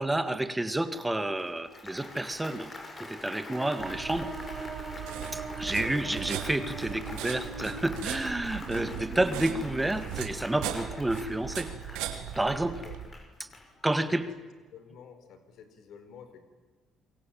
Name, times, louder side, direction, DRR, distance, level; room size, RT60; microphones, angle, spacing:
voice 1, 0.0-2.7 3.0-4.3 5.3-12.8 13.4-13.5 13.8-14.3, right 1 dB, 10° right, 11 dB, 2.0 m, -30 dB
Applause, 1.4-14.1, left 2 dB, 30° left, 6.2 m, -46 dB
sound 1, 3.6-10.2, right 4 dB, 40° right, 5.4 m, -42 dB
sound 2, 3.8-13.1, right 10 dB, 85° right, 3.1 m, -39 dB
voice 2, 12.6-13.0 14.0-14.3 14.7-16.4, left 8 dB, 70° left, 9 dB, 4.7 m, -48 dB
27.5 x 23.0 x 8.9 m, 1.4 s
supercardioid pair, 80°, 0 cm